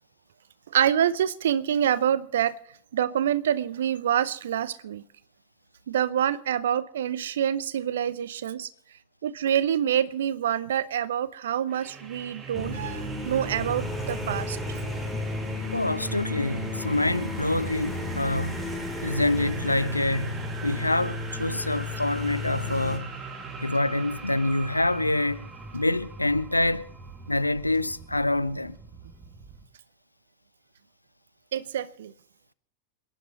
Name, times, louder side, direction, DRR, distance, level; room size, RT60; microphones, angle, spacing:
voice 1, 0.7-2.5 2.9-5.0 5.9-8.7 9.2-14.6 19.2-19.3 31.5-32.1, right 9 dB, 60° right, 0.8 m, -26 dB
sound 1, 11.7-29.6, right 3 dB, 25° right, 2.5 m, -39 dB
sound 2, 12.5-23.0, left 3 dB, 5° left, 3.3 m, -34 dB
voice 2, 15.7-18.7 19.0-23.1 23.6-25.5 25.7-26.9 27.3-28.8, left 2 dB, 85° left, 0.6 m, -26 dB
27.5 x 11.0 x 4.0 m
figure-of-eight pair, 90°, 0 cm